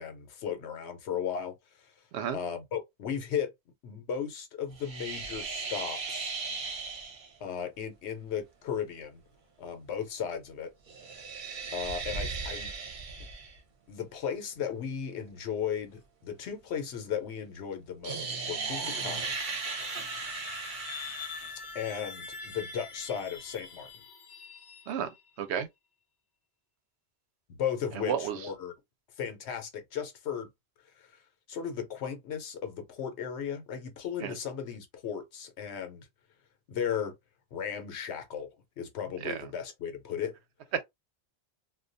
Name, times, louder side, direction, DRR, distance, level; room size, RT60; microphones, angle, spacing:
voice 1, 0.0-1.9 2.3-3.5 3.8-6.3 7.4-9.2 9.6-10.7 11.7-12.7 13.9-19.4 21.7-23.9 27.5-28.7 29.2-30.5 31.0-31.2 31.5-36.1 36.7-37.1 37.5-38.5 38.8-40.4, left 8 dB, 90° left, 1.0 m, -36 dB
sound 1, 4.7-7.3 10.9-13.6 18.0-21.6, right 4 dB, 55° right, 0.7 m, -37 dB
sound 2, 18.7-25.3, left 5 dB, 55° left, 0.6 m, -45 dB
voice 2, 28.0-28.4 34.2-34.4 39.2-39.4 40.7-40.8, right 8 dB, 90° right, 0.9 m, -31 dB
2.3 x 2.2 x 2.5 m
omnidirectional pair, 1.1 m